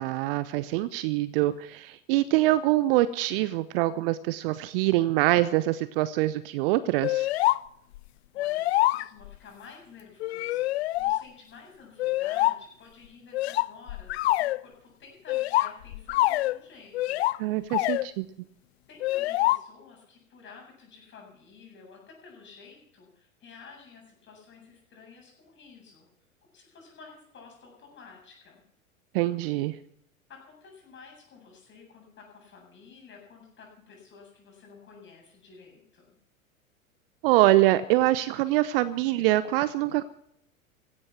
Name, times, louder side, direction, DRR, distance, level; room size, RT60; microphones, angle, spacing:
voice 1, 0.0-7.3 17.4-18.3 29.1-29.8 37.2-40.0, right 16 dB, 45° right, 16 dB, 0.8 m, -24 dB
sound 1, 7.0-7.6 7.9-8.0 8.4-9.3 10.2-11.2 12.0-12.6 13.3-14.6 15.3-16.6 16.9-17.4 17.7-18.0 19.0-19.6, left 17 dB, 50° left, 0.6 m, -25 dB
voice 2, 8.3-17.6 18.9-26.1 26.5-28.6 30.3-36.1, left 5 dB, 25° left, 0 dB, 7.8 m, -51 dB
16.0 x 12.0 x 6.0 m, 0.72 s
figure-of-eight pair, 95°, 41 cm